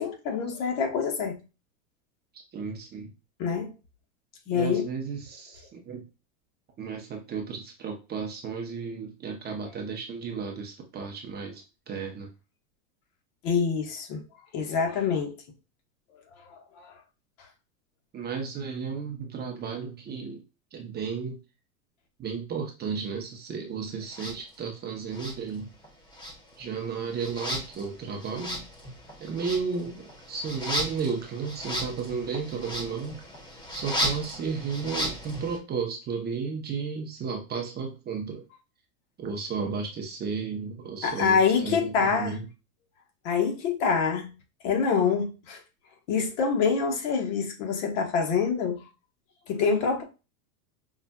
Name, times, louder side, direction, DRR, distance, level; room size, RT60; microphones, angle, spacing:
voice 1, 0.0-1.4 3.4-3.7 4.5-4.8 13.4-14.2 14.5-15.4 16.5-16.9 41.0-42.4 43.2-44.3 44.6-45.6 46.1-48.8 49.5-50.0, left 6 dB, 55° left, 1.2 m, -26 dB
voice 2, 2.5-3.1 4.5-6.0 6.8-12.3 18.1-20.4 20.7-21.4 22.2-25.7 26.6-28.6 29.2-33.2 33.7-38.4 39.2-42.5, right 5 dB, 25° right, 0.7 m, -33 dB
sound 1, 24.1-24.4 25.1-25.9 26.1-35.6, equal, 10° left, 0.7 m, -35 dB
5.3 x 2.4 x 2.2 m
supercardioid pair, 125°, 43 cm